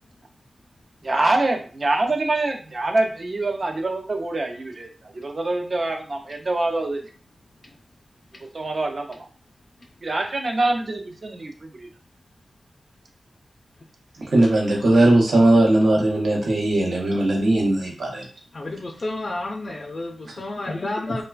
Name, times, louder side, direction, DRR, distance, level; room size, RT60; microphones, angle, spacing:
voice 1, 1.0-4.9 5.1-7.0 8.5-9.3 10.0-11.9, right 2 dB, 45° right, 4 dB, 0.4 m, -25 dB
voice 2, 14.3-18.2, right 1 dB, 80° right, -1 dB, 0.8 m, -18 dB
voice 3, 18.5-21.2, left 2 dB, 45° left, 0 dB, 0.4 m, -30 dB
3.1 x 2.1 x 2.3 m, 0.40 s
wide cardioid pair, 95°, 0 cm